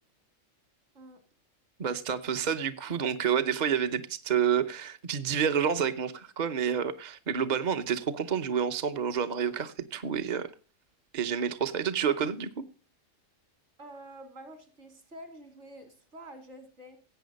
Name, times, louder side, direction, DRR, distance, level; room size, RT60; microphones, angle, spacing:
voice 1, 1.8-10.5 11.1-12.6, right 7 dB, 40° right, 0.8 m, -29 dB
voice 2, 13.8-17.0, right 1 dB, 60° right, 3.3 m, -48 dB
16.5 x 8.9 x 5.2 m
omnidirectional pair, 1.3 m